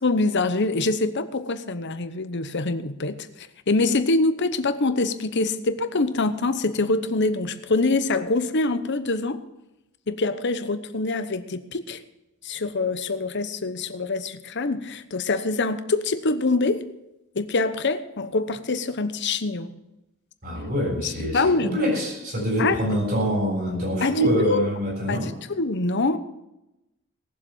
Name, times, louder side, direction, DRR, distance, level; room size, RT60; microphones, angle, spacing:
voice 1, 0.0-9.4 10.1-12.0 12.4-16.9 17.3-19.7 21.0-21.7 22.6-22.8 24.0-24.1 24.4-24.6 25.1-26.2, left 3 dB, 60° left, 11 dB, 1.0 m, -25 dB
voice 2, 20.4-25.3, equal, 50° right, -2 dB, 7.0 m, -25 dB
18.5 x 7.3 x 7.2 m, 0.93 s
head